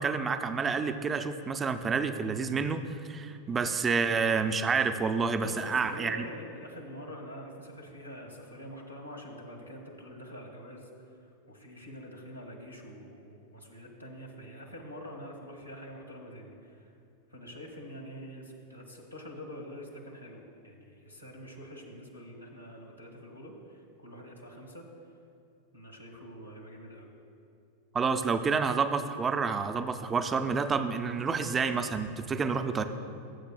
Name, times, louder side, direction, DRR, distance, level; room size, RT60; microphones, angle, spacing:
voice 1, 0.0-2.8 3.1-6.3 27.9-32.8, right 5 dB, 20° right, 9 dB, 0.5 m, -29 dB
voice 2, 5.4-11.2 11.5-16.9 17.3-24.9 25.7-27.1, equal, 90° left, -1 dB, 1.5 m, -45 dB
19.0 x 8.0 x 2.2 m, 2.7 s
figure-of-eight pair, 90°, 0 cm